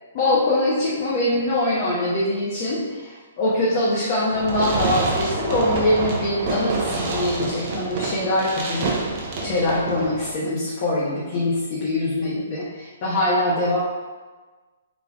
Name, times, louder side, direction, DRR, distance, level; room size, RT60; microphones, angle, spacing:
voice 1, 0.1-13.8, left 1 dB, 40° left, -7 dB, 1.0 m, -23 dB
Fireworks, 4.3-10.3, right 3 dB, 40° right, 0.9 m, -27 dB
4.1 x 3.3 x 3.6 m, 1.3 s
hypercardioid pair, 150°, 0 cm